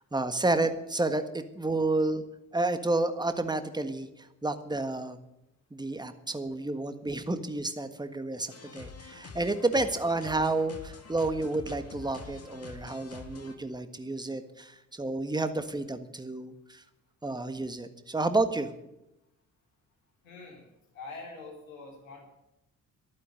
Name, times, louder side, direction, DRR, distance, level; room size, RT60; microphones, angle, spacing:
voice 1, 0.1-2.2 2.5-5.2 5.7-16.8 17.2-18.7, right 2 dB, 10° right, 10 dB, 1.6 m, -30 dB
sound 1, 8.5-13.6, left 4 dB, 40° left, 2.2 m, -46 dB
voice 2, 20.2-20.7 20.9-22.2, left 3 dB, 90° left, -1 dB, 3.6 m, -44 dB
12.0 x 9.3 x 9.3 m, 0.88 s
hypercardioid pair, 45°, 40 cm